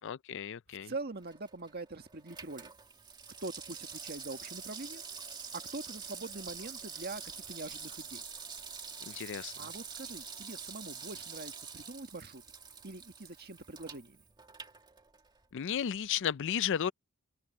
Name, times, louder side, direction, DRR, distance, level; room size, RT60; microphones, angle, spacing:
voice 1, 0.0-0.9 9.1-9.5 15.5-16.9, left 8 dB, 55° left, 0.4 m, -33 dB
voice 2, 0.8-2.7 3.4-5.0 5.5-8.2 9.6-12.4 12.8-14.2, right 2 dB, 45° right, 1.8 m, -43 dB
Water tap faucet / Sink (filling or washing), 1.1-15.4 15.8-15.9, right 5 dB, 20° right, 2.2 m, -46 dB
open air
head